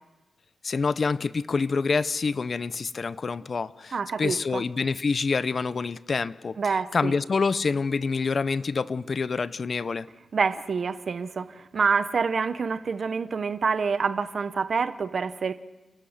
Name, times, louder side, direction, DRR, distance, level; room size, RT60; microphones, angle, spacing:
voice 1, 0.6-3.9 4.2-6.6 6.9-10.1, left 4 dB, 50° left, 17 dB, 0.6 m, -27 dB
voice 2, 3.9-4.6 6.6-7.1 10.3-15.5, right 5 dB, 60° right, 11 dB, 0.9 m, -27 dB
29.5 x 13.0 x 8.0 m, 1.1 s
cardioid pair, 85°, 0 cm